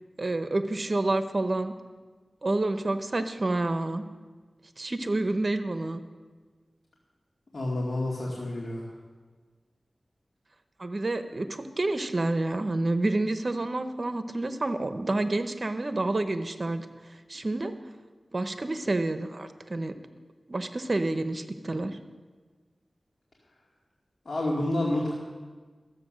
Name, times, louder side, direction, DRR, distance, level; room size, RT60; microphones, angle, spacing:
voice 1, 0.2-1.7 2.4-4.0 4.8-6.0 10.8-16.9 17.3-17.7 18.3-19.9 20.5-22.0, right 2 dB, 55° right, 9 dB, 0.9 m, -28 dB
voice 2, 7.5-8.9 24.3-25.1, left 1 dB, 65° left, -4 dB, 2.3 m, -29 dB
13.5 x 8.1 x 6.4 m, 1.4 s
cardioid pair, 40°, 0 cm